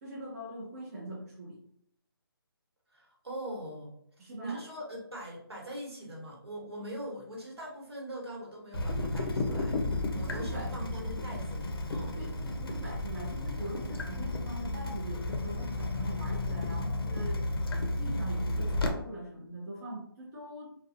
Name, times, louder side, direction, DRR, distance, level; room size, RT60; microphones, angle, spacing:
voice 1, 0.0-1.6 4.2-4.6 10.1-10.7 12.1-17.4 18.0-20.8, right 1 dB, 40° right, -3 dB, 0.6 m, -42 dB
voice 2, 2.9-3.9 4.2-9.8 10.1-12.2, right 1 dB, 90° right, -2 dB, 1.0 m, -41 dB
Water tap faucet / Drip, 8.7-18.9, left 2 dB, 65° left, 0.5 m, -33 dB
2.4 x 2.2 x 2.5 m, 0.72 s
figure-of-eight pair, 150°, 13 cm